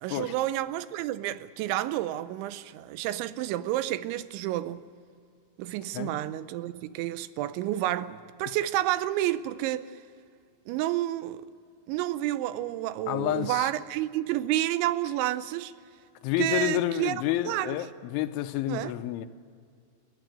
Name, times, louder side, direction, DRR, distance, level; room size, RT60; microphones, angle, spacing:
voice 1, 0.0-4.9 5.6-9.9 10.7-11.5 11.9-15.7 16.4-17.2 17.4-17.8 18.7-18.9, right 14 dB, 85° right, 3.0 m, -30 dB
voice 2, 13.1-13.7 16.2-19.3, left 13 dB, 90° left, 3.3 m, -29 dB
22.0 x 15.0 x 9.0 m
omnidirectional pair, 5.4 m